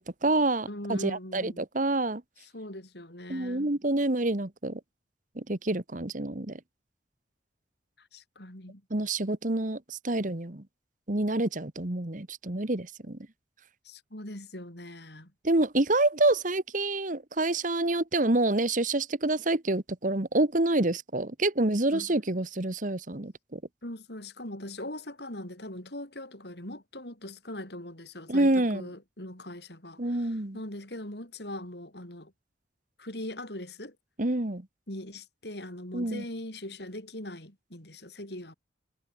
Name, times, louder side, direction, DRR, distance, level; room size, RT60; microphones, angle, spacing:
voice 1, 0.0-2.2 3.3-4.8 5.3-6.6 8.9-10.6 11.1-13.2 15.4-23.6 28.3-28.9 30.0-30.6 34.2-34.7 35.9-36.2, right 2 dB, 45° right, 1.5 m, -27 dB
voice 2, 0.7-1.6 2.4-3.7 8.0-8.8 13.8-15.3 21.9-22.1 23.8-32.3 33.0-34.0 34.9-38.5, left 1 dB, 60° left, 5.7 m, -41 dB
head